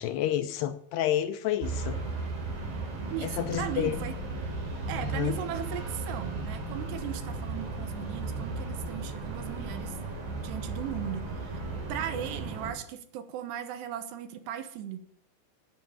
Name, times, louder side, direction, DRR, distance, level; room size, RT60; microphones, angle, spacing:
voice 1, 0.0-2.0 3.2-4.0 5.0-5.3, left 12 dB, 80° left, 9 dB, 2.5 m, -29 dB
sound 1, 1.6-12.7, right 3 dB, 50° right, 4.4 m, -35 dB
voice 2, 3.1-4.2 4.9-10.0 10.4-11.6 11.9-15.0, right 10 dB, 75° right, 10 dB, 2.9 m, -37 dB
12.5 x 9.3 x 7.0 m, 0.67 s
omnidirectional pair, 5.2 m